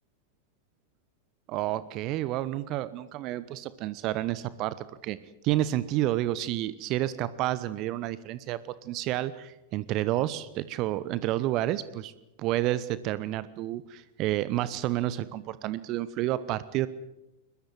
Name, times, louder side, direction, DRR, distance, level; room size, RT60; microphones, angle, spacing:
voice 1, 1.5-5.2 5.4-12.1 12.4-16.9, right 14 dB, 40° right, 17 dB, 1.0 m, -30 dB
22.5 x 21.5 x 7.7 m, 0.94 s
figure-of-eight pair, 90°, 0 cm